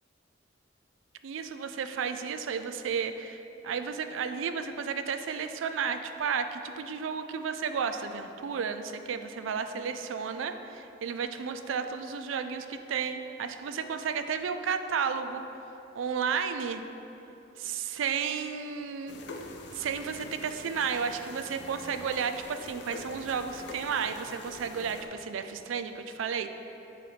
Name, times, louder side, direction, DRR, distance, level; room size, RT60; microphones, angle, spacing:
voice 1, 1.2-15.4 15.9-16.8 17.6-19.2 19.7-26.5, right 6 dB, 80° right, 9 dB, 0.3 m, -33 dB
sound 1, 19.1-25.0, left 2 dB, 55° left, 0.5 m, -45 dB
7.7 x 3.1 x 4.8 m, 3.0 s
head